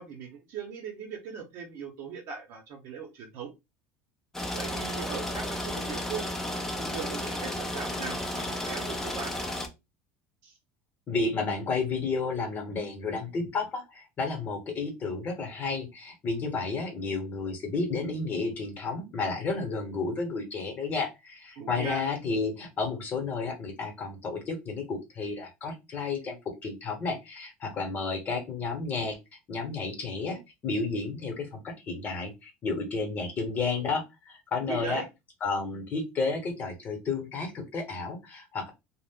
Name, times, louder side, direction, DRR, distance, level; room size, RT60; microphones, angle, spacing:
voice 1, 0.0-3.5 4.5-6.3 6.8-9.3 10.4-10.5 21.6-22.1 34.6-35.1, right 6 dB, 55° right, 2 dB, 0.8 m, -39 dB
sound 1, 4.3-9.7, left 1 dB, 5° left, 0.5 m, -33 dB
voice 2, 11.1-26.4 26.6-29.2 29.5-35.0 35.4-38.7, left 4 dB, 30° left, 4 dB, 0.9 m, -32 dB
2.4 x 2.1 x 3.6 m, 0.23 s
cardioid pair, 140°, 6 cm